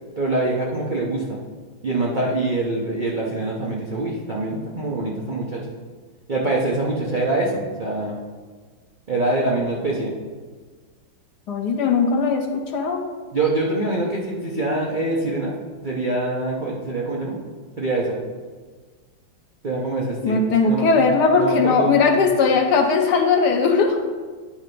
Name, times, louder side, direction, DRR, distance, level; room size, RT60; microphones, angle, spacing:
voice 1, 0.2-1.4 1.8-5.6 6.3-8.2 9.1-10.1 13.3-15.6 15.8-17.4 17.8-18.2 19.6-21.1 21.4-21.9 22.2-22.3, right 2 dB, 85° right, -3 dB, 0.4 m, -24 dB
voice 2, 11.5-13.0 20.2-24.0, left 4 dB, 70° left, 4 dB, 1.1 m, -19 dB
9.8 x 3.3 x 5.3 m, 1.5 s
omnidirectional pair, 2.1 m